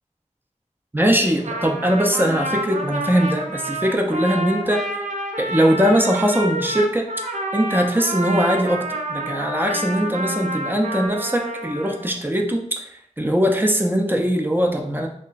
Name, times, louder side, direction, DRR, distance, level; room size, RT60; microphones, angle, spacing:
voice 1, 0.9-5.0 5.4-7.1 7.5-12.9 13.2-15.1, equal, 15° right, 2 dB, 0.4 m, -21 dB
Trumpet, 1.3-12.1, right 1 dB, 75° right, 0.4 m, -28 dB
2.5 x 2.2 x 3.8 m, 0.67 s
wide cardioid pair, 60°, 13 cm